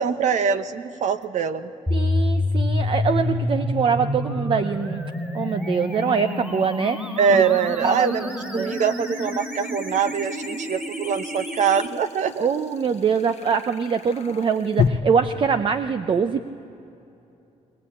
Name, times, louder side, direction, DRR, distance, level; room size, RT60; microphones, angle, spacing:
voice 1, 0.0-1.7 7.2-8.3 8.5-12.5, right 6 dB, 65° right, 10 dB, 1.1 m, -23 dB
sound 1, 1.2-1.3 4.7-14.9, left 8 dB, 55° left, 0.9 m, -35 dB
sound 2, 1.9-11.9, left 2 dB, 10° right, 2.4 m, -28 dB
voice 2, 1.9-5.0 5.3-7.4 7.8-8.7 12.4-16.4, right 6 dB, 40° right, 9 dB, 0.6 m, -23 dB
21.5 x 20.0 x 8.6 m, 2.8 s
cardioid pair, 125°, 14 cm